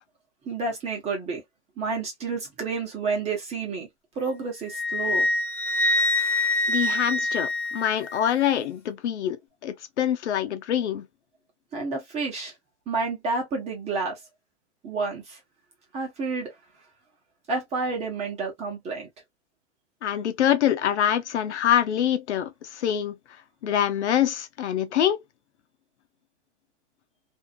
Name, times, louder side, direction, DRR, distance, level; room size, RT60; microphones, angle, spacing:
voice 1, 0.4-1.4 1.8-3.9 4.1-5.3 11.7-12.5 12.9-14.2 14.8-15.4 15.9-16.5 17.5-19.1, right 4 dB, 20° right, 1.1 m, -30 dB
Wind instrument woodwind instrument, 4.7-8.2, left 1 dB, 5° left, 0.4 m, -25 dB
voice 2, 6.7-9.4 9.6-11.0 20.0-22.5 22.8-23.1 23.6-25.2, left 10 dB, 85° left, 0.8 m, -24 dB
2.7 x 2.4 x 2.4 m
hypercardioid pair, 150°, 34 cm